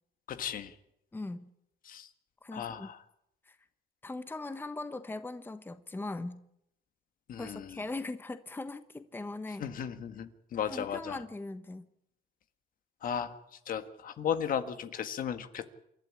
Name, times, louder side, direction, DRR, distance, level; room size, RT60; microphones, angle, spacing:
voice 1, 0.3-0.7 1.9-2.1 2.5-3.0 7.3-7.7 9.6-11.2 13.0-13.4 13.7-15.7, left 8 dB, 55° left, 1.7 m, -35 dB
voice 2, 1.1-1.5 2.4-2.9 3.5-3.6 4.0-6.4 7.4-9.7 10.7-11.9, left 2 dB, 10° left, 1.2 m, -40 dB
28.0 x 12.0 x 9.9 m
cardioid pair, 110°, 17 cm